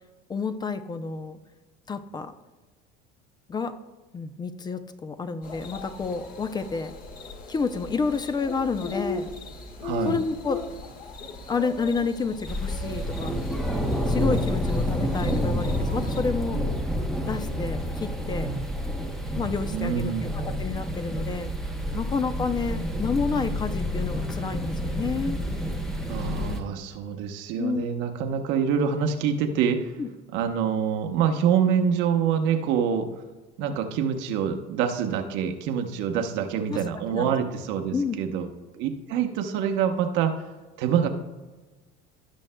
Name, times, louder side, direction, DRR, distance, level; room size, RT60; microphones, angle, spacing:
voice 1, 0.3-1.4 1.9-2.3 3.5-3.7 4.1-6.9 7.5-9.3 10.0-10.6 11.5-13.4 14.1-16.6 17.3-18.5 19.4-21.5 21.9-25.4 27.6-27.9 30.0-30.1 36.7-36.8 37.1-37.4 37.9-38.2, left 4 dB, 20° left, 10 dB, 0.5 m, -29 dB
sound 1, 5.4-16.2, left 4 dB, 45° left, 1.5 m, -38 dB
voice 2, 9.8-10.2 19.7-20.3 26.1-30.0 30.3-33.1 33.6-38.5 38.8-40.4 40.8-41.1, right 7 dB, 70° right, 5 dB, 1.0 m, -26 dB
sound 2, 12.5-26.6, equal, ahead, 1.0 m, -29 dB
17.0 x 6.3 x 2.2 m, 1.2 s
cardioid pair, 125°, 20 cm